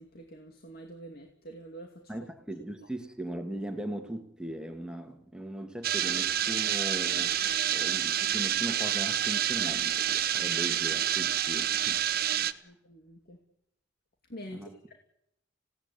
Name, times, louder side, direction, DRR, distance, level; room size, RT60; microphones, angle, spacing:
voice 1, 0.0-2.1 12.4-13.4 14.3-14.9, right 1 dB, 55° left, 2.7 m, -46 dB
voice 2, 2.1-7.4 7.7-12.0 12.4-12.6 14.5-14.7, right 1 dB, 5° right, 2.1 m, -39 dB
sound 1, 5.8-12.5, right 10 dB, 55° right, 1.1 m, -28 dB
27.5 x 17.5 x 9.8 m
head